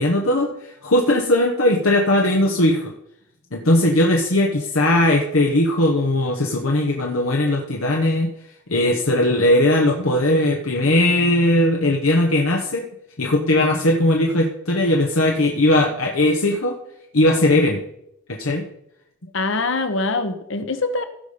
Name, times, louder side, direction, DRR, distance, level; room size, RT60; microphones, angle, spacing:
voice 1, 0.0-2.9 3.5-8.3 8.7-12.9 13.2-16.7 17.1-17.8 18.3-18.7, left 1 dB, 80° left, 1 dB, 1.2 m, -19 dB
voice 2, 19.3-21.0, left 3 dB, 60° left, 10 dB, 1.0 m, -23 dB
16.5 x 5.5 x 5.1 m, 0.78 s
head